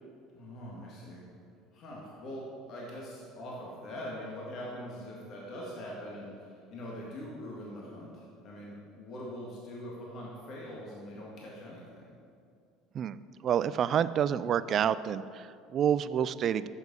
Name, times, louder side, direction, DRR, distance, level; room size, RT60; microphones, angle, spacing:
voice 1, 0.3-1.2 1.7-12.1, equal, 55° left, -4 dB, 1.9 m, -43 dB
voice 2, 13.4-16.7, right 9 dB, 45° right, 15 dB, 0.3 m, -28 dB
8.1 x 7.0 x 5.4 m, 2.4 s
supercardioid pair, 100°, 0 cm